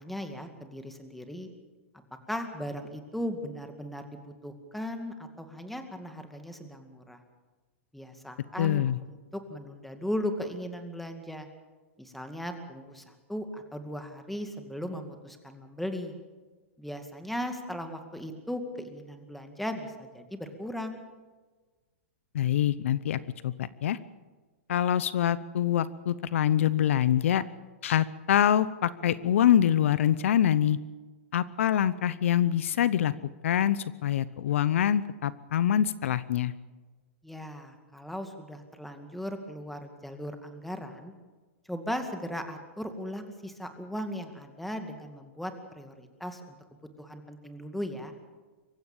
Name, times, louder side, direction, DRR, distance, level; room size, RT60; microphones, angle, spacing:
voice 1, 0.0-1.5 2.3-7.2 7.9-11.5 12.0-16.1 16.8-21.0 37.2-41.1 41.7-46.6 47.0-48.1, equal, ahead, 6 dB, 2.2 m, -37 dB
voice 2, 8.6-9.0 22.3-24.0 24.7-27.4 27.8-30.8 31.3-33.1 33.4-36.5, left 10 dB, 70° left, 17 dB, 0.8 m, -25 dB
24.0 x 15.0 x 7.4 m, 1.3 s
hypercardioid pair, 135°, 7 cm